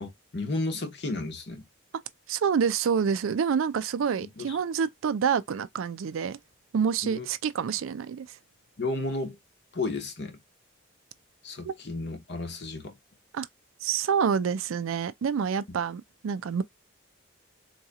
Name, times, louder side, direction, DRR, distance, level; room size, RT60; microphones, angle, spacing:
voice 1, 0.0-1.7 4.2-4.6 7.0-7.3 8.8-9.4 9.7-10.4 11.4-12.9, left 2 dB, 55° left, 0.9 m, -33 dB
voice 2, 2.3-6.4 6.7-8.3 11.6-11.7 13.3-13.5 13.8-16.6, right 6 dB, 75° right, 0.4 m, -27 dB
3.9 x 2.8 x 2.3 m
head